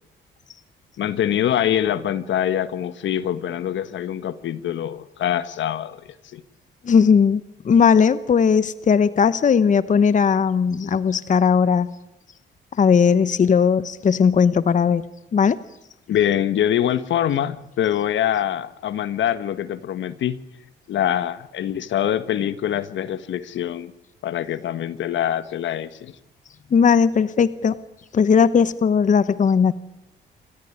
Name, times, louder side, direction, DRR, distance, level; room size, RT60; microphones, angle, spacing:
voice 1, 1.0-6.4 16.1-20.4 20.9-23.9 24.2-26.1, left 10 dB, 70° left, 14 dB, 1.3 m, -24 dB
voice 2, 6.8-11.9 12.8-15.0 15.3-15.6 26.7-27.8 28.1-29.7, left 6 dB, 40° left, 15 dB, 0.9 m, -17 dB
27.5 x 14.5 x 10.0 m, 0.87 s
cardioid pair, 90°, 20 cm